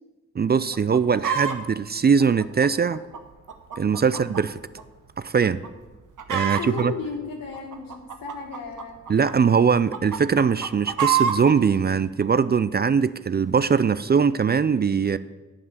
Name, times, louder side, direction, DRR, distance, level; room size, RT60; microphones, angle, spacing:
voice 1, 0.4-3.0 3.8-4.6 5.2-5.6 6.3-6.9 9.1-15.2, right 6 dB, 30° right, 16 dB, 0.4 m, -21 dB
Chicken rooster, 0.7-1.6 2.2-4.4 4.8-4.9 5.4-5.7 5.9-6.8 7.5-9.3 9.7-11.5 12.2-12.3, right 8 dB, 65° right, 0.9 m, -27 dB
voice 2, 6.4-9.0, left 5 dB, 85° left, 1 dB, 1.8 m, -35 dB
9.3 x 5.9 x 6.9 m, 1.2 s
supercardioid pair, 45°, 33 cm